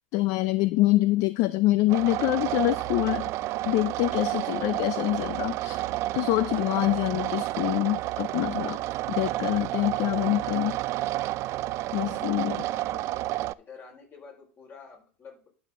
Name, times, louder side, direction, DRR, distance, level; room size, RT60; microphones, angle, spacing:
voice 1, 0.1-3.2 3.7-5.8 6.1-8.8 9.1-10.8 11.9-12.6, left 17 dB, 55° left, 14 dB, 0.5 m, -25 dB
sound 1, 1.9-13.5, right 16 dB, 50° right, 0.4 m, -30 dB
voice 2, 12.0-13.1 13.6-15.5, left 5 dB, 35° left, 1 dB, 4.7 m, -49 dB
11.0 x 6.2 x 3.7 m, 0.38 s
hypercardioid pair, 100°, 7 cm